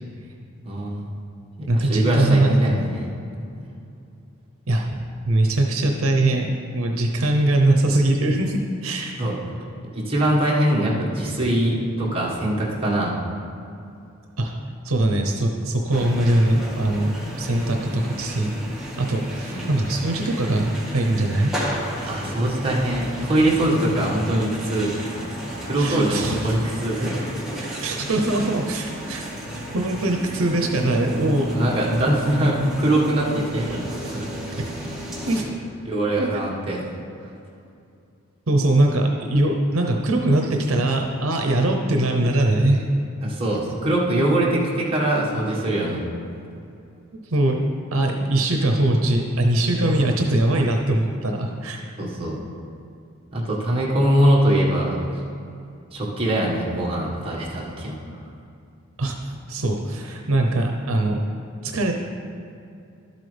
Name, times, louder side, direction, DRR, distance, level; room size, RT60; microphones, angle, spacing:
voice 1, 0.6-1.0 1.7-3.1 9.2-9.4 9.9-13.2 19.5-19.7 22.0-25.3 25.6-27.3 31.5-34.3 35.8-36.9 43.2-46.1 49.9-50.0 52.0-52.4 53.3-55.1 55.9-58.0, right 1 dB, 25° right, -5 dB, 1.6 m, -22 dB
voice 2, 1.7-2.6 4.7-5.0 5.3-9.2 14.4-14.5 14.8-17.1 17.4-18.5 19.0-21.5 21.9-22.1 25.8-26.6 27.8-29.3 29.7-31.5 34.6-34.7 35.3-35.5 36.2-36.3 38.5-42.8 47.3-47.6 47.9-51.8 59.0-61.2 61.6-61.9, right 1 dB, 75° right, 2 dB, 0.8 m, -21 dB
sound 1, 15.9-35.4, right 1 dB, ahead, 1.5 m, -33 dB
12.0 x 8.2 x 3.4 m, 2.6 s
head